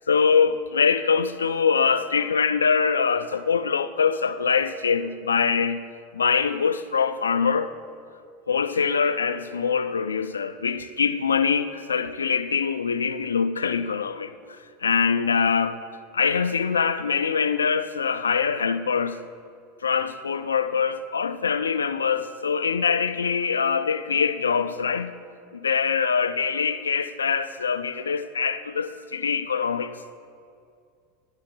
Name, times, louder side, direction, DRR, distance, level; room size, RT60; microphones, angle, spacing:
voice 1, 0.0-5.8 6.1-7.7 8.5-15.8 16.1-19.2 19.8-25.1 25.5-30.0, left 6 dB, 80° left, 0.3 m, -24 dB
11.0 x 4.4 x 3.9 m
figure-of-eight pair, 85°, 0 cm